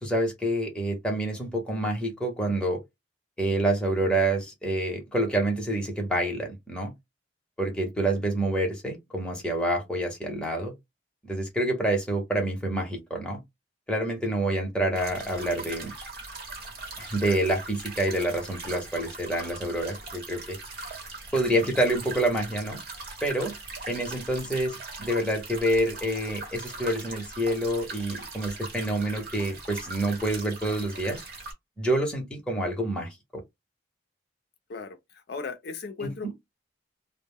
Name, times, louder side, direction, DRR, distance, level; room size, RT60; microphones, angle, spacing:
voice 1, 0.0-2.8 3.4-6.9 7.6-10.7 11.2-13.4 13.9-15.9 17.0-20.6 21.3-22.8 23.2-23.5 23.9-31.2 31.8-33.1 36.0-36.3, right 1 dB, 5° left, 0.8 m, -27 dB
sound 1, 14.9-31.5, right 3 dB, 50° right, 1.0 m, -40 dB
voice 2, 34.7-36.3, left 4 dB, 55° left, 0.4 m, -37 dB
2.1 x 2.0 x 3.4 m
head